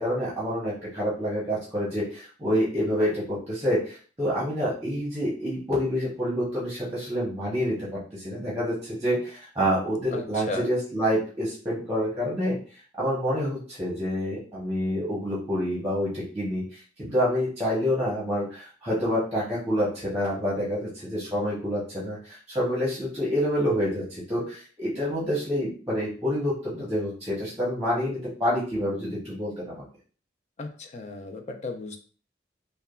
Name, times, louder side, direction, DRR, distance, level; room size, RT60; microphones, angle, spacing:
voice 1, 0.0-12.6 13.0-29.8, equal, 15° right, -6 dB, 0.8 m, -27 dB
voice 2, 10.1-10.7 30.6-32.0, left 3 dB, 40° left, 4 dB, 0.4 m, -35 dB
3.3 x 2.1 x 2.3 m, 0.41 s
head